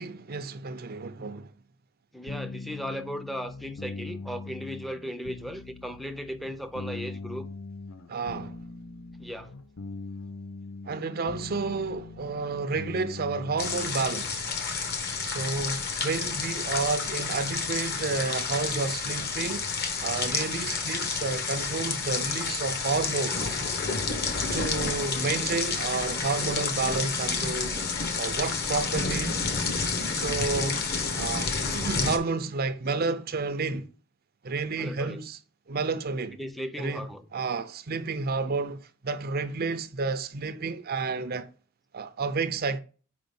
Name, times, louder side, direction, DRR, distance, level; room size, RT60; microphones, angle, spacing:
voice 1, 0.0-1.5 8.1-8.6 10.8-14.5 15.2-19.7 20.0-23.6 24.5-27.8 28.1-29.3 30.1-30.8 31.2-33.9 34.4-35.4 35.7-36.4 36.8-37.1 37.3-41.5 41.9-42.8, right 4 dB, 45° right, 0.6 m, -30 dB
voice 2, 2.1-7.5 9.2-9.5 16.6-16.7 31.6-31.8 34.8-35.2 36.3-37.3, equal, ahead, 0.6 m, -37 dB
sound 1, 2.3-14.1, left 3 dB, 70° left, 0.7 m, -41 dB
sound 2, 13.6-32.2, left 4 dB, 45° left, 1.2 m, -30 dB
5.1 x 5.1 x 5.3 m
head